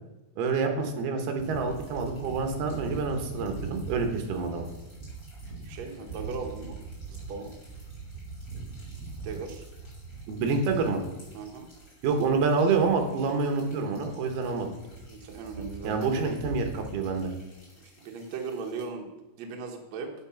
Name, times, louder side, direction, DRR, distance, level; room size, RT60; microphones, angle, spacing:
voice 1, 0.4-4.7 10.3-11.0 12.0-14.7 15.8-17.3, right 4 dB, 70° right, 5 dB, 2.8 m, -27 dB
sound 1, 1.3-18.8, right 3 dB, 20° left, 3.6 m, -42 dB
voice 2, 5.6-6.8 7.1-7.5 9.2-9.6 11.3-11.7 15.1-16.3 18.0-19.1 19.4-20.1, right 5 dB, 90° right, 2 dB, 1.5 m, -38 dB
8.7 x 8.6 x 5.7 m, 1.0 s
omnidirectional pair, 5.2 m